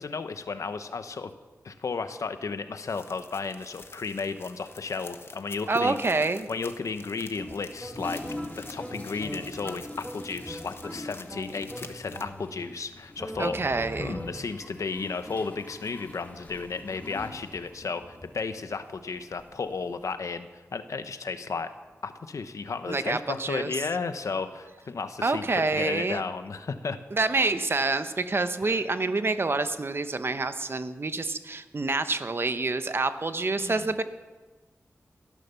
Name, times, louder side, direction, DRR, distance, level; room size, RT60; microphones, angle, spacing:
voice 1, 0.0-1.3 1.6-6.0 6.5-8.2 8.6-13.6 14.0-21.7 22.0-27.0 28.6-28.8 33.6-33.9, left 4 dB, 80° left, 10 dB, 1.0 m, -34 dB
sound 1, 2.9-12.2, left 3 dB, 50° left, 1.2 m, -49 dB
voice 2, 5.7-6.5 13.4-14.2 22.9-23.7 25.2-26.2 27.1-34.0, right 3 dB, 45° right, 10 dB, 1.0 m, -27 dB
Toilet flush, 7.3-20.1, left 1 dB, 30° left, 2.5 m, -44 dB
sound 2, 7.8-12.8 13.2-14.7, equal, 5° right, 2.1 m, -42 dB
17.5 x 11.0 x 6.9 m, 1.3 s
wide cardioid pair, 75°, 5 cm